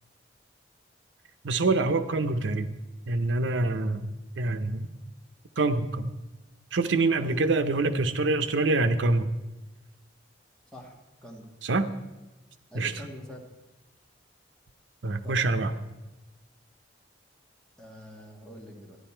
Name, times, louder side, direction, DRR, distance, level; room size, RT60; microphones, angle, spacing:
voice 1, 1.4-2.7 3.1-4.1 4.4-4.9 5.6-6.1 6.7-9.3 11.6-11.9 12.7-12.9 15.0-15.7, right 3 dB, 85° right, 10 dB, 0.7 m, -25 dB
voice 2, 12.7-13.5 15.2-15.5 17.8-19.0, equal, 5° left, -1 dB, 1.6 m, -44 dB
12.0 x 10.5 x 4.4 m, 1.1 s
head